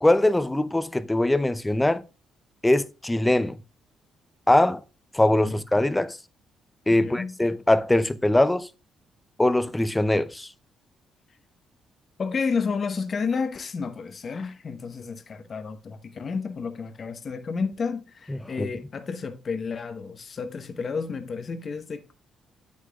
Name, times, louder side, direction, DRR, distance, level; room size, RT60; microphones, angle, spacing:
voice 1, 0.0-2.0 2.6-3.6 4.5-4.8 5.1-6.2 6.9-8.7 9.4-10.5 18.3-18.7, left 1 dB, 10° left, 0.5 m, -22 dB
voice 2, 6.9-7.3 12.2-22.1, left 5 dB, 45° left, 0.9 m, -31 dB
8.4 x 8.2 x 2.3 m
cardioid pair, 90°, 0 cm